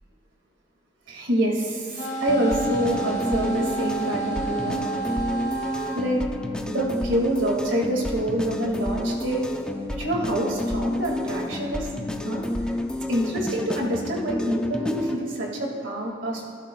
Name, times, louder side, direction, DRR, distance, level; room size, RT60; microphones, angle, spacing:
voice 1, 1.1-1.9 2.2-4.8 5.9-6.2 6.7-9.4 10.0-11.9 12.2-12.4 13.1-16.4, right 1 dB, 80° right, -1 dB, 2.1 m, -26 dB
sound 1, 1.9-6.0, right 4 dB, 50° left, 1.8 m, -30 dB
sound 2, 2.3-15.2, left 1 dB, 5° left, 0.5 m, -30 dB
18.0 x 12.5 x 2.3 m, 2.5 s
head